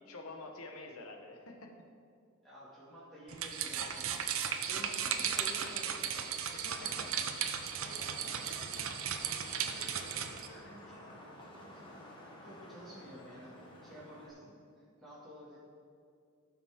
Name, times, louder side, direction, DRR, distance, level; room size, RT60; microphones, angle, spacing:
voice 1, 0.1-1.7 6.5-7.1, left 2 dB, 75° left, 3 dB, 1.1 m, -48 dB
voice 2, 2.4-6.3 6.8-7.3 7.7-9.0 9.5-12.0 12.4-15.6, equal, ahead, -11 dB, 2.2 m, -52 dB
sound 1, 3.3-10.5, right 8 dB, 65° right, 0.6 m, -36 dB
Vehicle horn car horn honking / Traffic noise roadway noise, 6.9-14.3, left 1 dB, 20° left, 1.2 m, -53 dB
17.0 x 5.9 x 3.6 m, 2.4 s
head